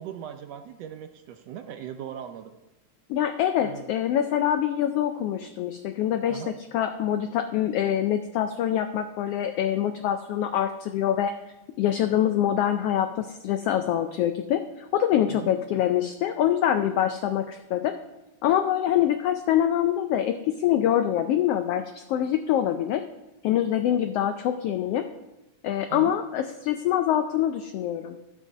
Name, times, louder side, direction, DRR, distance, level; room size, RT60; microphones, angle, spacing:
voice 1, 0.0-2.5 3.6-3.9 6.3-6.5 15.3-15.5 25.9-26.2, right 9 dB, 75° right, 7 dB, 1.6 m, -39 dB
voice 2, 3.1-6.4 6.7-11.3 11.8-17.9 18.4-23.0 23.4-25.1 25.6-28.2, left 10 dB, 90° left, 8 dB, 1.3 m, -25 dB
12.0 x 7.5 x 5.4 m, 0.99 s
omnidirectional pair, 3.3 m